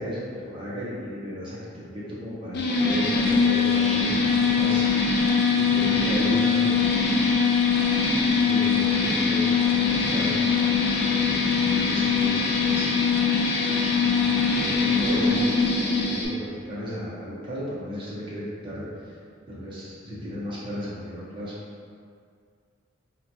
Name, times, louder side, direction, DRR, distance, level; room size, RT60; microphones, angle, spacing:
voice 1, 0.0-7.5 8.2-12.9 13.9-19.2 19.5-21.6, equal, 25° right, -8 dB, 0.6 m, -35 dB
sound 1, 2.5-16.2, left 5 dB, 50° left, 0.4 m, -22 dB
2.9 x 2.2 x 4.0 m, 2.2 s
head